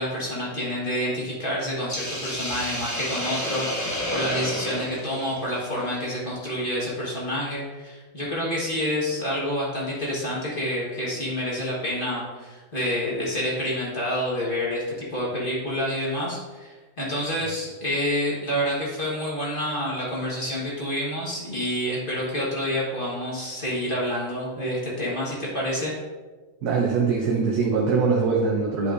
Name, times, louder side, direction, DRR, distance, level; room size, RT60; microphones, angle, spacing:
voice 1, 0.0-25.9, equal, 35° left, -6 dB, 1.7 m, -28 dB
Hiss, 1.9-6.2, left 1 dB, 15° left, 0.7 m, -31 dB
voice 2, 26.6-28.9, right 4 dB, 75° right, -1 dB, 1.4 m, -22 dB
9.7 x 5.4 x 2.6 m, 1.3 s
omnidirectional pair, 1.7 m